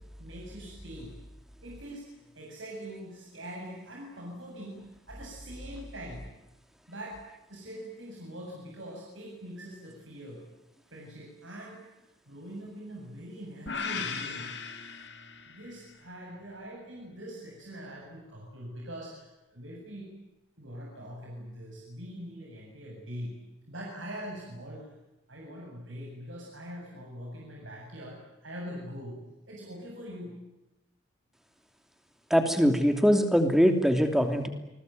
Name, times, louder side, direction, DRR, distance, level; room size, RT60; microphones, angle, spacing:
voice 1, 0.2-1.1 1.6-6.3 6.9-7.2 7.5-10.4 10.9-14.5 15.5-20.1 20.6-23.4 23.7-24.9 25.3-30.4, equal, 75° right, -2 dB, 7.8 m, -43 dB
sound 1, 13.7-15.9, left 5 dB, 60° left, 2.9 m, -37 dB
voice 2, 32.3-34.5, equal, ahead, 6 dB, 2.9 m, -22 dB
29.0 x 20.5 x 9.3 m, 0.97 s
head